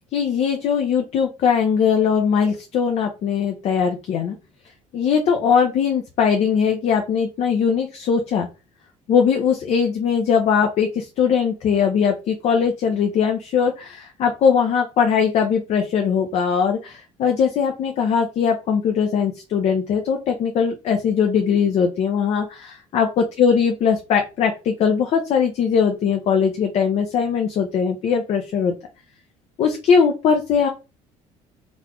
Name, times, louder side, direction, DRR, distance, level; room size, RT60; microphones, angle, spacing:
voice 1, 0.1-4.4 4.9-8.5 9.1-28.7 29.6-30.7, left 6 dB, 55° left, 4 dB, 0.8 m, -20 dB
4.0 x 3.6 x 3.1 m, 0.29 s
cardioid pair, 135°, 13 cm